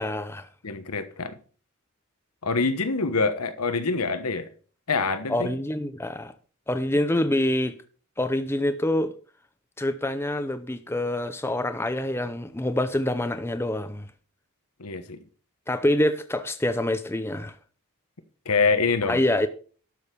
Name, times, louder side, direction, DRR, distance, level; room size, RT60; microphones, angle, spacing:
voice 1, 0.0-0.5 5.3-6.3 6.7-7.8 8.2-9.1 9.8-14.1 15.7-17.5 19.1-19.5, left 1 dB, 10° left, 0.6 m, -26 dB
voice 2, 0.6-1.4 2.4-4.5 4.9-5.5 14.8-15.2 18.4-19.2, left 4 dB, 85° left, 1.2 m, -25 dB
12.0 x 6.5 x 5.2 m
head